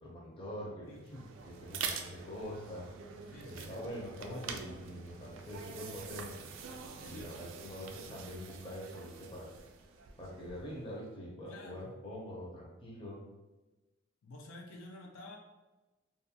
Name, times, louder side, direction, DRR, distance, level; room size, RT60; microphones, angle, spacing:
voice 1, 0.0-2.9 3.4-6.4 7.0-9.7 10.2-13.2, equal, 25° left, -4 dB, 0.5 m, -44 dB
sound 1, 0.9-10.8, right 6 dB, 75° right, 0.3 m, -45 dB
voice 2, 3.3-3.8 7.0-7.3 11.5-12.0 14.2-15.4, left 2 dB, 80° left, 1 dB, 0.4 m, -50 dB
2.4 x 2.1 x 2.7 m, 1.1 s
head